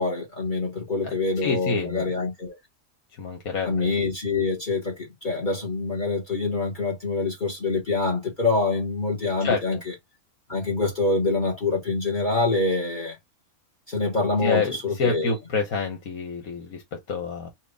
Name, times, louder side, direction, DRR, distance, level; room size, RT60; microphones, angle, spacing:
voice 1, 0.0-2.6 3.6-4.9 5.2-9.9 10.5-13.2 13.9-15.3, left 3 dB, 35° left, 1.7 m, -25 dB
voice 2, 1.4-2.0 3.2-3.9 9.4-9.8 14.4-17.5, left 4 dB, 75° left, 1.7 m, -28 dB
4.6 x 2.7 x 3.4 m
omnidirectional pair, 1.5 m